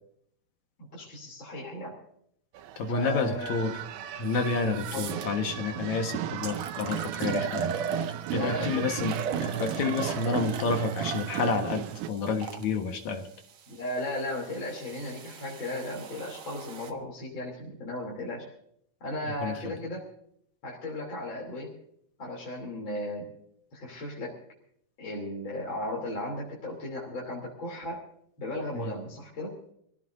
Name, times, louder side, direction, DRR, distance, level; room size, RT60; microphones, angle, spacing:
voice 1, 0.9-2.0 2.9-3.8 4.9-5.2 8.3-9.2 13.7-18.5 19.0-20.1 20.6-21.7 22.2-23.3 23.7-24.3 25.0-28.0 28.4-29.5, left 1 dB, 35° left, -3 dB, 3.5 m, -35 dB
sound 1, 2.5-12.1, right 11 dB, 80° right, 2.5 m, -35 dB
voice 2, 2.8-3.7 4.2-7.7 8.3-13.3 19.3-19.8 28.7-28.9, left 4 dB, 60° left, 4 dB, 2.4 m, -30 dB
sound 2, 4.3-4.4 4.8-5.3 5.9-6.0 6.4-8.5 9.0-12.7 13.5-16.9, right 6 dB, 60° right, 2.1 m, -38 dB
25.5 x 16.5 x 2.6 m, 0.68 s
omnidirectional pair, 4.3 m